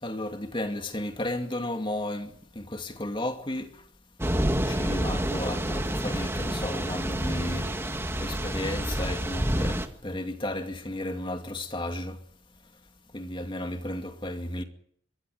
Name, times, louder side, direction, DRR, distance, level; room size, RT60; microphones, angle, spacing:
voice 1, 0.0-3.7 4.6-7.7 8.2-12.2 13.1-14.6, left 1 dB, 25° left, 2.5 m, -33 dB
Thunder / Rain, 4.2-9.9, right 1 dB, 15° right, 1.7 m, -28 dB
26.0 x 23.5 x 4.9 m
head